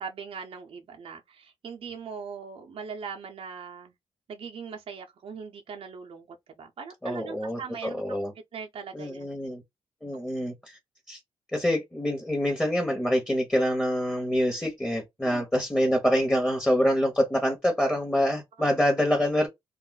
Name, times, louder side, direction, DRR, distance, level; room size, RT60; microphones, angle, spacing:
voice 1, 0.0-3.9 4.3-8.0 8.5-9.3 15.3-15.5, right 6 dB, 55° right, 0.6 m, -40 dB
voice 2, 7.0-8.3 8.9-9.6 10.0-10.8 11.1-11.2 11.5-19.5, equal, 10° left, 1.0 m, -26 dB
2.3 x 2.0 x 3.9 m
cardioid pair, 75°, 11 cm